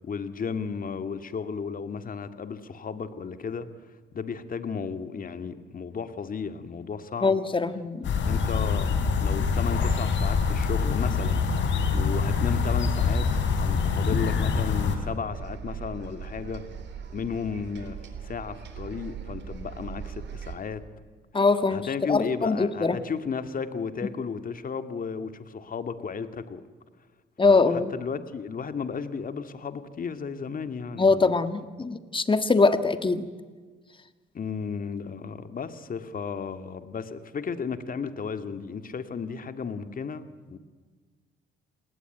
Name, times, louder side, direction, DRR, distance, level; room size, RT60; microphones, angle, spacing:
voice 1, 0.0-3.7 4.1-7.4 8.3-8.9 9.2-11.5 11.9-13.3 13.6-16.6 17.1-18.0 18.2-20.8 21.7-26.6 27.4-31.3 34.3-40.6, left 6 dB, 45° left, 10 dB, 2.1 m, -34 dB
voice 2, 7.2-8.1 21.3-23.0 27.4-27.9 31.0-33.3, left 3 dB, 25° left, 10 dB, 1.9 m, -23 dB
sound 1, 8.0-15.0, left 5 dB, 70° left, 4.2 m, -25 dB
sound 2, 15.3-20.6, right 7 dB, 65° right, 3.8 m, -40 dB
28.5 x 20.5 x 9.2 m, 1.4 s
cardioid pair, 90°, 20 cm